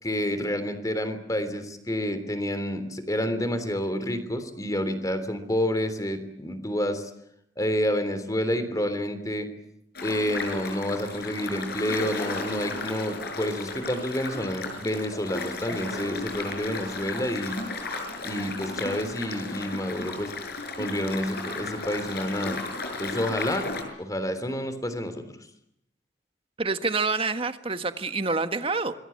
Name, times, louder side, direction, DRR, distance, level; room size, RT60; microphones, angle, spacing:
voice 1, 0.0-7.0 7.6-9.5 10.0-17.6 18.2-20.3 20.8-22.6 23.0-25.2, equal, 20° left, 10 dB, 3.4 m, -29 dB
sound 1, 9.9-23.8, left 3 dB, 55° left, 6.4 m, -34 dB
voice 2, 26.6-28.9, right 4 dB, 30° right, 9 dB, 1.6 m, -27 dB
27.0 x 22.0 x 8.7 m, 0.77 s
head